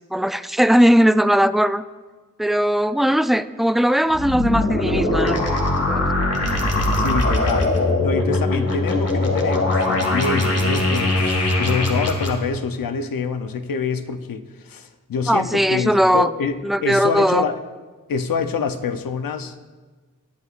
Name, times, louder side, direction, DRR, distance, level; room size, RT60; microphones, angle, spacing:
voice 1, 0.1-1.8 2.4-6.1 15.3-16.3 16.6-17.4, equal, ahead, 13 dB, 0.3 m, -19 dB
sound 1, 4.1-12.3, left 2 dB, 45° left, 1.9 m, -21 dB
voice 2, 7.0-7.7 8.0-17.6 18.1-19.5, left 5 dB, 85° left, 9 dB, 0.7 m, -26 dB
18.5 x 8.4 x 2.5 m, 1.3 s
cardioid pair, 50°, 33 cm